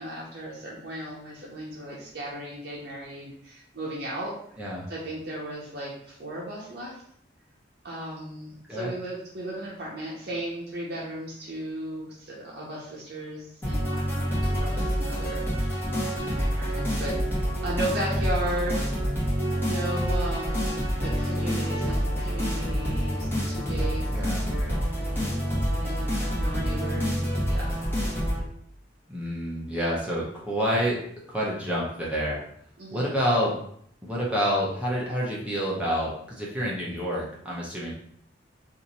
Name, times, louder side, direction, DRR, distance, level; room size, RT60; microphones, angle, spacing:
voice 1, 0.0-4.4 4.9-7.0 7.8-15.8 16.1-18.9 19.6-24.8 25.7-27.8 32.8-33.1, right 1 dB, 60° right, -5 dB, 0.7 m, -36 dB
sound 1, 13.6-28.4, equal, 10° left, 1.1 m, -27 dB
voice 2, 24.1-24.4 29.1-31.0 31.3-32.4 32.9-33.5 34.0-37.9, equal, 5° right, -6 dB, 0.7 m, -28 dB
2.8 x 2.6 x 4.0 m, 0.66 s
head